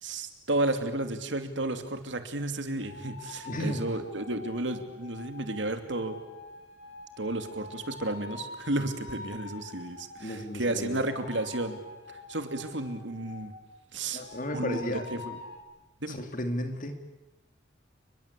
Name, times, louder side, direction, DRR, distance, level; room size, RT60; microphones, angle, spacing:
voice 1, 0.0-6.2 7.2-11.8 12.1-13.5 13.9-14.2 14.5-15.4 16.0-16.2, right 2 dB, 70° right, 8 dB, 2.8 m, -32 dB
sound 1, 2.8-10.4 11.0-13.7 14.2-15.6, left 3 dB, 80° left, 4.7 m, -46 dB
voice 2, 3.4-3.9 10.2-11.0 14.1-15.1 16.1-17.0, left 1 dB, 45° left, 7 dB, 2.9 m, -33 dB
29.5 x 22.0 x 8.4 m, 1.0 s
head